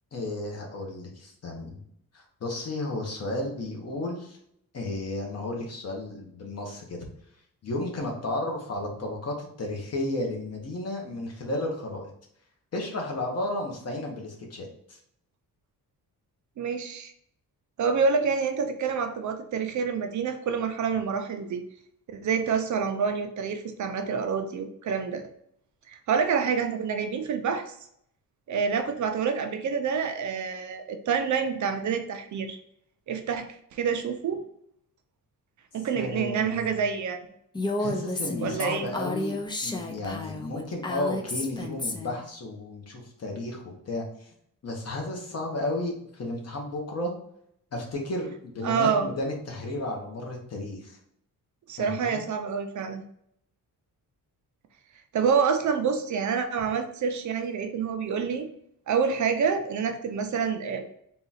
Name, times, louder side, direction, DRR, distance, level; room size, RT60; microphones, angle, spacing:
voice 1, 0.1-1.8 2.1-4.4 4.7-7.0 7.6-12.1 12.7-15.0 36.0-36.7 37.8-39.4 39.6-44.3 44.6-47.1 47.7-51.0 51.8-52.2, left 1 dB, 45° left, 0 dB, 1.0 m, -33 dB
voice 2, 16.6-17.1 17.8-21.6 22.1-25.3 25.9-27.7 28.5-32.6 33.1-34.4 35.7-37.2 38.4-38.9 48.6-49.1 51.7-53.0 55.1-58.5 58.9-60.9, right 6 dB, 55° right, 6 dB, 0.5 m, -27 dB
Female speech woman speaking, 37.5-42.2, left 2 dB, 15° left, 0.3 m, -32 dB
3.8 x 2.4 x 4.0 m, 0.70 s
wide cardioid pair, 155°, 36 cm